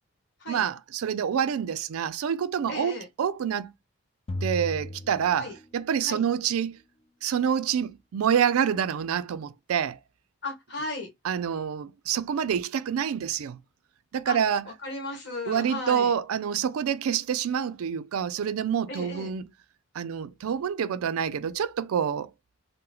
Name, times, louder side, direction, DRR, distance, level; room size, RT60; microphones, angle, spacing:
voice 1, 0.5-3.7 4.4-6.8 7.2-10.0 11.2-13.6 14.1-14.7 15.5-19.5 19.9-22.3, right 8 dB, 90° right, 0.4 m, -27 dB
voice 2, 2.7-3.1 5.4-5.5 6.0-6.2 10.4-11.1 14.3-14.4 14.8-16.1 18.9-19.3, left 2 dB, 55° left, 1.4 m, -35 dB
sound 1, 4.3-6.1, left 1 dB, 25° left, 0.3 m, -35 dB
3.8 x 2.1 x 2.8 m
head